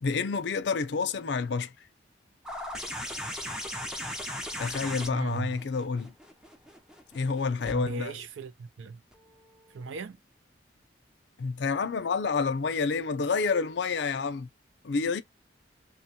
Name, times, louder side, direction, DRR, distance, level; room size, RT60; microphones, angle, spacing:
voice 1, 0.0-1.7 4.6-6.1 7.1-8.2 11.4-14.5 14.8-15.2, left 4 dB, 65° left, 0.5 m, -29 dB
sound 1, 2.5-7.8 9.1-9.2, left 1 dB, 5° right, 0.5 m, -37 dB
voice 2, 5.1-5.6 7.7-9.0 9.7-10.2, right 4 dB, 85° right, 0.4 m, -37 dB
3.0 x 2.2 x 2.7 m
head